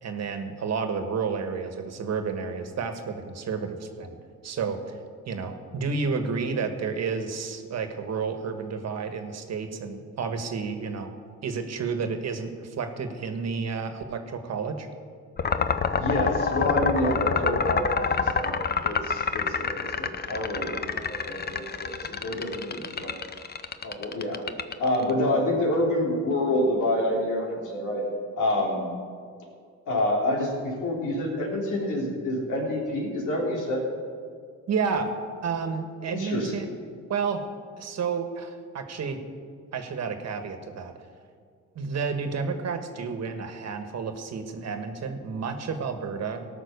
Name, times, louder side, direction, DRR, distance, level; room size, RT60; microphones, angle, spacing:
voice 1, 0.0-4.2 4.4-5.0 5.3-11.1 11.4-14.9 34.7-35.1 35.4-36.6 37.1-37.4 37.8-39.2 39.7-40.9 41.7-46.5, right 5 dB, 60° right, 7 dB, 1.5 m, -31 dB
sound 1, 15.4-25.1, left 6 dB, 35° left, 0.7 m, -27 dB
voice 2, 15.9-18.5 18.8-23.1 23.8-24.4 24.8-28.0 28.4-28.9 29.9-33.8 36.0-36.7, left 1 dB, 80° left, -2 dB, 3.5 m, -27 dB
18.0 x 6.1 x 6.7 m, 2.1 s
cardioid pair, 90°, 30 cm